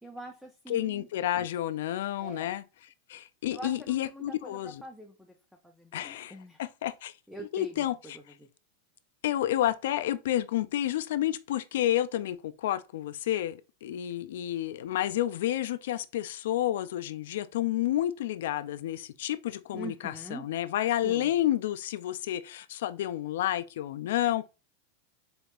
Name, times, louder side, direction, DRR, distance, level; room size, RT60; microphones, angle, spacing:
voice 1, 0.0-1.1 2.2-2.5 3.5-5.3 5.6-6.6 7.3-7.9 8.1-8.5 19.7-20.5 21.0-21.3, right 2 dB, ahead, 0.4 m, -44 dB
voice 2, 0.7-2.6 3.1-4.8 5.9-7.1 7.5-8.2 9.2-24.5, left 12 dB, 70° left, 0.3 m, -30 dB
4.3 x 2.4 x 3.4 m
supercardioid pair, 165°, 0 cm